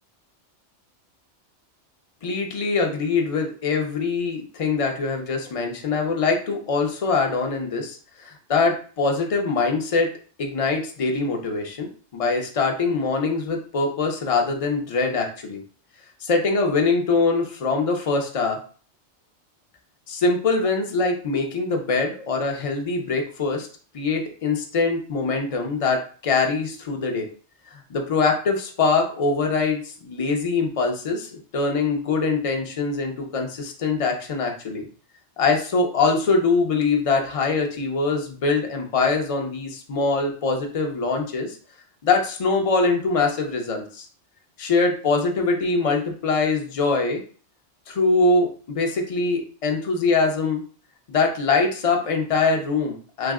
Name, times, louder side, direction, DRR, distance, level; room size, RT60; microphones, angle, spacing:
voice 1, 2.2-10.1 10.4-15.6 16.2-18.6 20.1-23.7 23.9-27.3 27.7-34.8 35.4-41.6 42.0-44.1 44.6-47.2 47.9-50.6 51.1-53.3, left 4 dB, 40° left, 2 dB, 0.5 m, -23 dB
3.4 x 2.1 x 3.6 m, 0.41 s
omnidirectional pair, 1.2 m